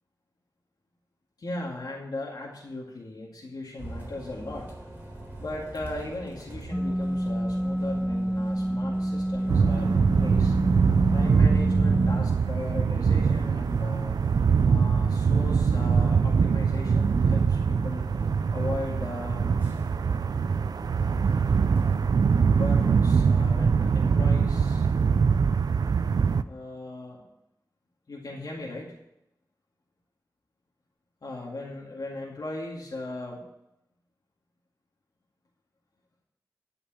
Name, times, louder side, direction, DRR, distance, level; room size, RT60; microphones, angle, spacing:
voice 1, 1.4-4.7 5.4-10.6 11.1-14.2 14.6-18.0 18.5-19.6 22.5-24.9 26.4-27.3 28.1-28.9 31.2-33.4, left 2 dB, 75° left, -3 dB, 2.1 m, -38 dB
Bus, 3.8-22.1, right 1 dB, 30° right, 3.9 m, -43 dB
sound 1, 6.7-12.2, equal, 10° left, 0.6 m, -28 dB
sound 2, 9.5-26.4, right 5 dB, 80° right, 0.4 m, -23 dB
11.5 x 5.3 x 8.8 m, 0.84 s
wide cardioid pair, 75°, 7 cm